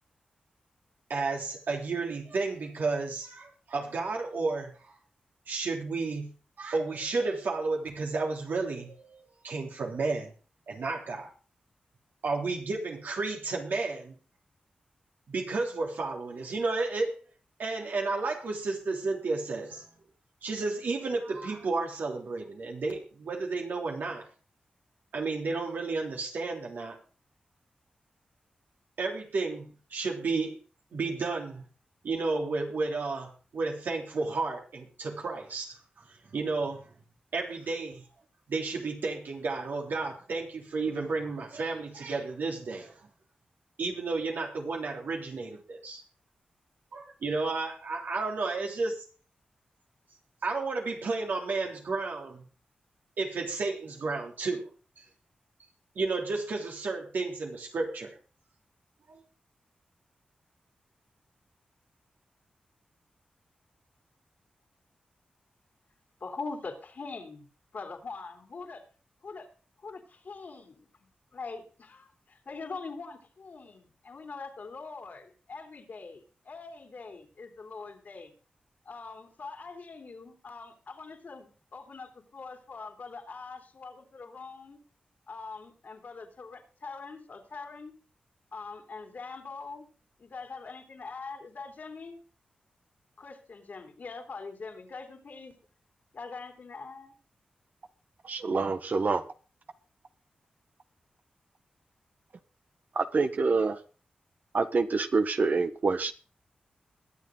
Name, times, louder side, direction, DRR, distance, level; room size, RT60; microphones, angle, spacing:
voice 1, 1.1-4.7 5.5-6.3 6.6-10.3 10.7-11.3 12.2-14.1 15.3-17.2 17.6-19.9 20.4-24.2 25.1-27.0 29.0-30.6 30.9-31.6 32.0-35.8 36.1-36.8 37.3-38.0 38.5-42.9 43.8-46.0 46.9-49.0 50.4-52.4 53.2-54.7 55.0-55.1 55.9-58.2 59.1-59.2, right 3 dB, 75° right, 3.4 m, -32 dB
voice 2, 66.2-67.5 67.7-68.8 69.2-69.5 69.8-78.3 78.8-84.8 85.3-87.9 88.5-89.9 90.2-92.2 93.2-95.5 96.1-97.2, left 4 dB, 65° left, 3.2 m, -43 dB
voice 3, 98.2-99.2 102.9-103.8 104.5-106.1, right 4 dB, 60° right, 1.2 m, -26 dB
22.0 x 7.8 x 3.9 m
cardioid pair, 45°, 3 cm